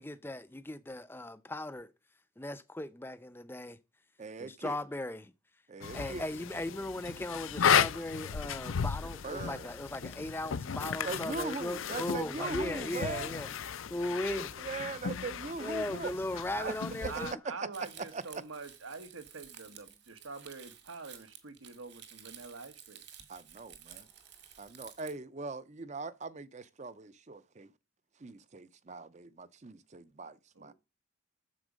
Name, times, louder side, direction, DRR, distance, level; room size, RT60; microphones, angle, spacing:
voice 1, 0.0-1.9 2.4-3.8 4.4-5.3 5.9-13.5 13.9-14.5 15.6-17.4, left 1 dB, 10° left, 0.5 m, -37 dB
voice 2, 4.2-4.8 5.7-6.3 9.0-9.7 11.0-13.3 14.5-16.2 16.6-16.7 17.0-17.1 17.6-17.7 18.1-18.2 23.3-24.1 24.6-27.7 28.2-30.7, right 3 dB, 35° right, 0.5 m, -41 dB
sound 1, 5.8-17.3, left 7 dB, 75° left, 0.5 m, -34 dB
voice 3, 17.1-23.0 30.5-30.7, right 4 dB, 85° right, 1.4 m, -45 dB
Crumpling crinkling, 17.7-25.1, right 9 dB, 55° right, 1.7 m, -53 dB
9.7 x 7.2 x 5.1 m
head